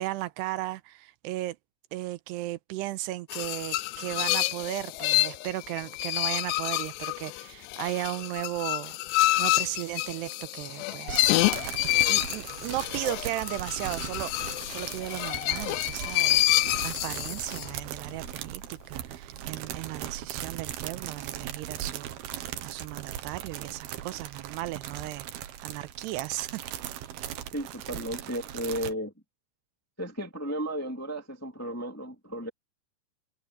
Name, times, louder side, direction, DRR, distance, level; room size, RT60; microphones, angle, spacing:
voice 1, 0.0-1.6 1.9-9.0 9.4-11.3 12.1-14.3 14.7-22.1 22.6-25.3 25.6-26.9, right 16 dB, 85° right, 2.8 m, -36 dB
sound 1, 3.3-17.8, left 18 dB, 85° left, 2.8 m, -28 dB
sound 2, 11.1-28.9, right 11 dB, 70° right, 3.1 m, -39 dB
voice 2, 27.5-29.1 30.0-32.5, equal, 10° left, 0.9 m, -34 dB
omnidirectional pair, 4.8 m